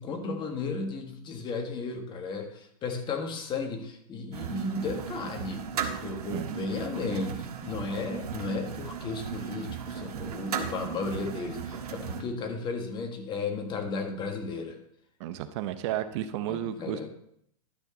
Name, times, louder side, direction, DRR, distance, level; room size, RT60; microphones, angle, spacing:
voice 1, 0.0-5.7 6.0-14.8 16.5-17.1, left 4 dB, 25° left, 5 dB, 1.5 m, -34 dB
sound 1, 4.3-12.2, right 7 dB, 90° right, 1.4 m, -36 dB
voice 2, 15.2-17.1, right 11 dB, 50° right, 11 dB, 0.7 m, -33 dB
11.5 x 4.4 x 7.0 m, 0.72 s
hypercardioid pair, 140°, 19 cm